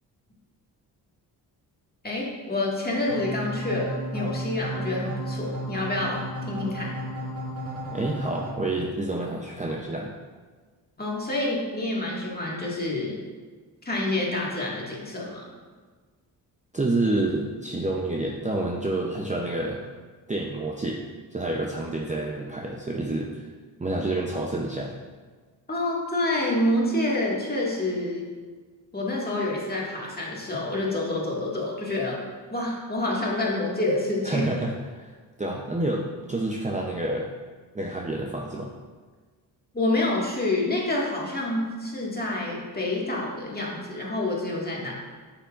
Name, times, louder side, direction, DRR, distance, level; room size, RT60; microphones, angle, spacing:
voice 1, 2.0-6.2 6.5-6.9 11.0-13.2 13.9-15.5 25.7-28.3 28.9-32.2 32.5-34.4 39.7-44.9, left 2 dB, 20° left, -4 dB, 1.9 m, -27 dB
sound 1, 3.1-8.5, right 1 dB, 35° right, 1.8 m, -33 dB
voice 2, 7.9-10.1 16.7-19.9 20.3-21.0 21.3-23.5 23.8-24.9 34.2-35.1 35.4-37.3 37.7-38.7, right 2 dB, 15° right, -1 dB, 0.7 m, -28 dB
7.9 x 5.9 x 2.5 m, 1.5 s
cardioid pair, 65°, 43 cm